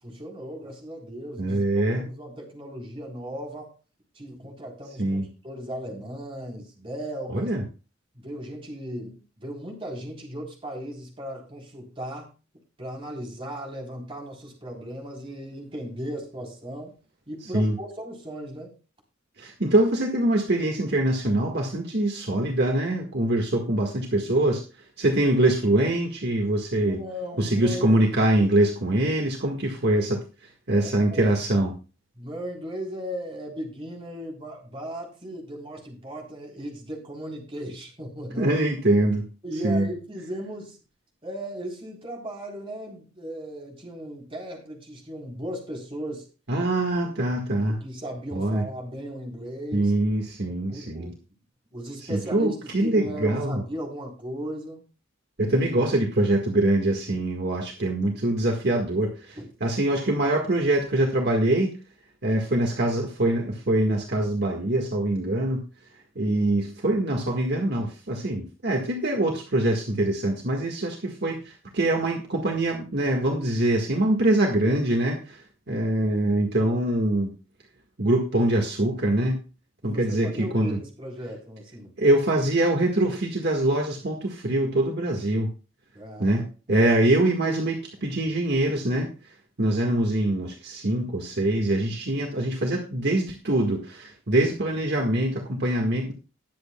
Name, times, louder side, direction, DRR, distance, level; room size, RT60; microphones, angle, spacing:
voice 1, 0.0-1.6 2.0-3.7 4.1-7.5 8.2-12.3 12.8-16.9 17.3-18.7 26.9-28.0 30.8-31.4 32.2-38.6 39.4-40.8 41.2-46.3 47.7-49.9 50.5-51.2 51.7-54.8 59.4-59.5 79.8-81.9 85.9-86.9, equal, 30° right, -1 dB, 3.8 m, -37 dB
voice 2, 1.4-2.0 5.0-5.3 7.3-7.6 17.5-17.7 19.4-24.6 25.0-27.0 27.4-30.2 30.7-31.7 38.4-39.3 39.6-39.9 46.5-47.8 48.3-48.7 49.7-51.1 52.0-53.6 55.4-61.7 62.2-65.6 66.1-77.3 78.0-79.4 79.8-80.8 82.0-85.5 86.2-89.1 89.6-96.1, right 1 dB, 55° right, 1 dB, 1.7 m, -24 dB
20.0 x 8.0 x 2.3 m, 0.34 s
head